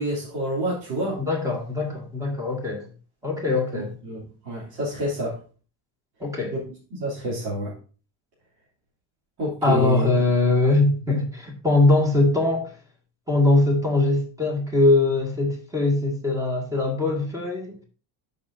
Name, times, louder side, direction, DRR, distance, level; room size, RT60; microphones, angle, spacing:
voice 1, 0.0-1.2 4.1-5.4 6.5-6.6 6.9-7.7 9.4-10.1, right 1 dB, 55° right, 3.1 m, -28 dB
voice 2, 1.2-2.9 3.2-3.9 6.2-6.5 9.6-12.7 13.3-17.8, left 2 dB, 5° right, 1.9 m, -21 dB
13.5 x 5.7 x 2.7 m
cardioid pair, 165°, 47 cm